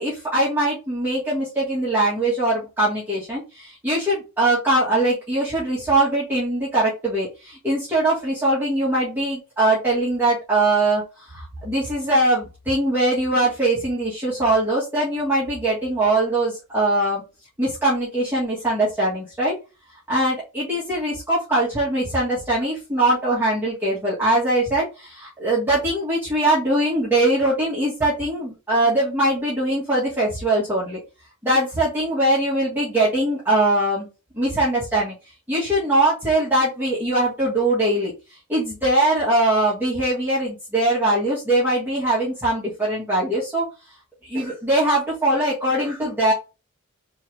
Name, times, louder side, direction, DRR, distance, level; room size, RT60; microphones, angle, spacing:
voice 1, 0.0-17.2 17.6-19.5 20.1-31.0 31.4-34.1 34.3-35.1 35.5-43.7 44.2-46.3, right 1 dB, 10° right, -8 dB, 1.8 m, -21 dB
4.4 x 3.3 x 3.2 m, 0.29 s
head